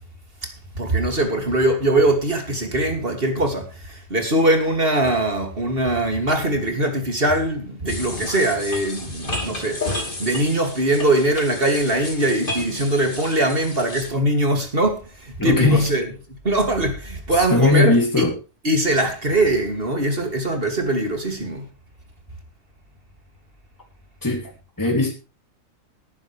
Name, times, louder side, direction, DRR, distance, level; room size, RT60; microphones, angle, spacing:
voice 1, 0.4-9.8 10.2-16.0 16.4-17.9 18.6-21.7, right 1 dB, 45° right, 3.0 m, -21 dB
sound 1, 7.9-14.1, left 2 dB, 40° left, 3.0 m, -32 dB
voice 2, 15.4-15.9 17.5-18.3 24.2-24.5 24.8-25.1, left 3 dB, 15° left, 3.2 m, -18 dB
19.5 x 9.7 x 3.5 m
omnidirectional pair, 1.4 m